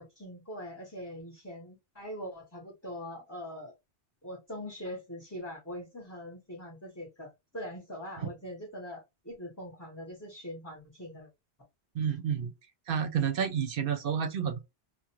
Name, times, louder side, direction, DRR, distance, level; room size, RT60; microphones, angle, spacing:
voice 1, 0.0-3.7 4.2-11.3, equal, 15° left, 0.8 m, -42 dB
voice 2, 11.9-12.5 12.9-14.6, right 7 dB, 65° right, 0.7 m, -30 dB
2.4 x 2.1 x 2.8 m
omnidirectional pair, 1.1 m